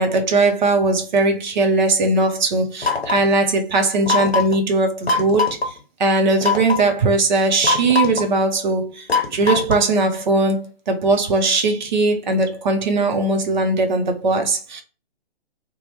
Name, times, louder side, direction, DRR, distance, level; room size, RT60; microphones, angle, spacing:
voice 1, 0.0-5.7 6.0-14.8, right 3 dB, 50° right, 0.8 m, -19 dB
sound 1, 2.8-3.3 4.1-4.6 5.1-5.7 6.4-6.9 7.6-8.3 9.1-9.9, left 4 dB, 85° left, 0.7 m, -21 dB
2.8 x 2.2 x 3.0 m
figure-of-eight pair, 130°, 30 cm